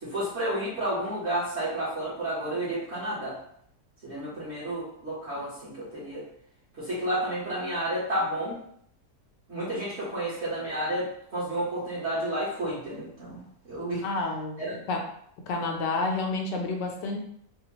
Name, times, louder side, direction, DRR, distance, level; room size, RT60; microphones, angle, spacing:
voice 1, 0.0-3.4 4.0-6.2 6.8-8.6 9.5-13.4 13.7-14.0 14.6-14.7, right 1 dB, 45° right, -10 dB, 1.3 m, -31 dB
voice 2, 14.0-15.0 15.5-17.2, left 3 dB, 80° left, 2 dB, 1.3 m, -30 dB
4.3 x 2.4 x 2.9 m, 0.68 s
omnidirectional pair, 1.8 m